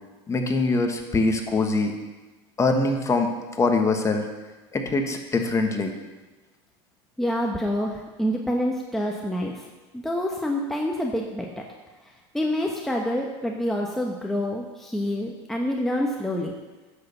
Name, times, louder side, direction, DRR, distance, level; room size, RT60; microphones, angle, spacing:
voice 1, 0.3-1.9 2.6-3.3 3.6-4.2 4.7-5.9, left 3 dB, 20° left, 4 dB, 1.3 m, -23 dB
voice 2, 7.2-9.7 9.9-11.6 12.3-16.5, left 1 dB, ahead, 0 dB, 0.9 m, -27 dB
9.6 x 6.7 x 6.9 m, 1.2 s
supercardioid pair, 125°, 14 cm